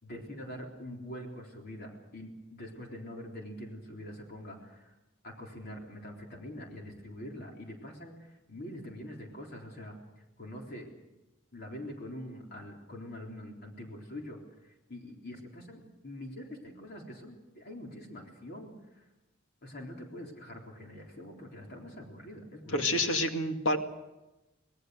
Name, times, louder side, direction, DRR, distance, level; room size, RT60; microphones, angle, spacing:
voice 1, 0.0-4.9 5.2-10.9 11.5-19.0 19.6-23.1, left 1 dB, 50° left, 0 dB, 3.8 m, -44 dB
voice 2, 22.7-23.8, left 1 dB, 70° left, 5 dB, 2.2 m, -28 dB
26.0 x 19.0 x 6.5 m, 1.0 s
head